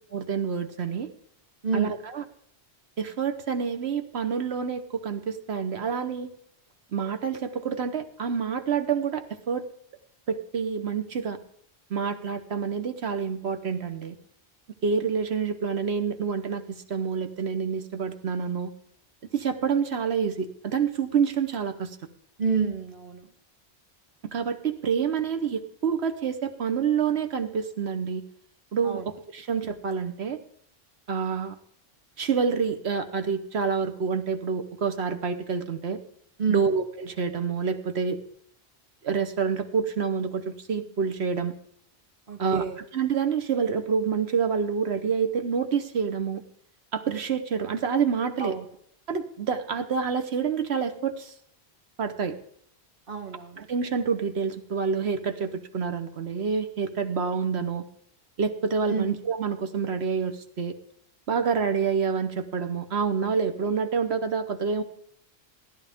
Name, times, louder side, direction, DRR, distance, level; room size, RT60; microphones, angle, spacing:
voice 1, 0.1-1.1 1.7-2.2 3.0-6.3 6.9-9.6 10.3-11.4 11.9-14.1 14.8-18.7 19.3-21.9 24.2-28.2 28.7-29.0 29.3-30.4 31.1-31.6 32.2-36.0 36.5-38.2 39.0-41.5 42.4-42.6 42.9-46.4 46.9-48.5 49.1-51.3 52.0-52.3 53.6-57.8 58.4-60.7 61.3-64.8, right 6 dB, 75° right, 8 dB, 1.3 m, -27 dB
voice 2, 1.6-2.0 22.4-23.3 28.8-29.1 36.4-36.7 42.3-42.8 48.4-48.7 53.1-53.7 58.9-59.1, right 5 dB, 55° right, 6 dB, 1.4 m, -29 dB
15.5 x 10.5 x 3.6 m, 0.67 s
omnidirectional pair, 1.1 m